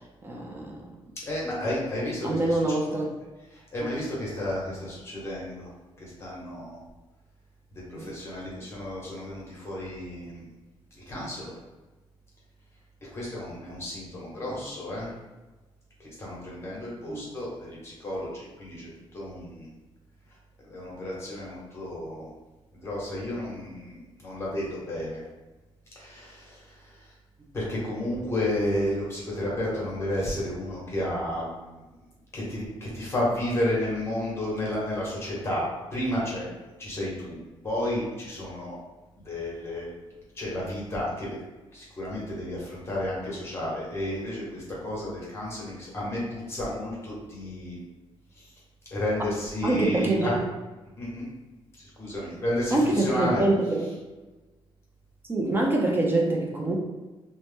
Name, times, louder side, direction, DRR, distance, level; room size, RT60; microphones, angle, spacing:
voice 1, 0.2-0.8 2.2-3.1 3.8-3.9 8.0-8.1 14.4-14.6 17.1-17.3 49.6-50.4 52.7-53.8 55.3-56.8, right 2 dB, 20° right, -1 dB, 0.4 m, -25 dB
voice 2, 1.2-2.8 3.5-5.7 6.0-6.8 7.7-10.4 10.9-11.6 13.0-15.1 16.0-18.9 19.1-19.7 20.6-22.3 22.7-25.2 26.0-27.1 27.5-31.8 32.3-36.5 36.8-37.4 37.6-38.8 39.2-39.9 40.3-41.4 41.7-47.8 48.3-48.5 48.9-50.4 51.0-51.3 51.8-53.9, left 1 dB, 25° left, -5 dB, 0.9 m, -32 dB
2.7 x 2.0 x 3.3 m, 1.2 s
wide cardioid pair, 165°, 10 cm